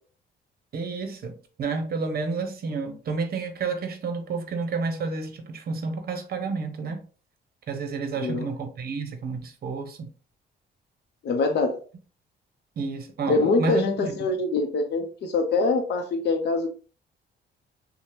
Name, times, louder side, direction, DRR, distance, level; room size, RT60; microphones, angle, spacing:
voice 1, 0.7-7.0 7.7-10.0 12.8-14.1, right 4 dB, 50° right, 0.7 m, -30 dB
voice 2, 11.2-11.8 13.3-16.7, left 3 dB, 60° left, 0.6 m, -24 dB
2.8 x 2.1 x 3.2 m
cardioid pair, 90°, 20 cm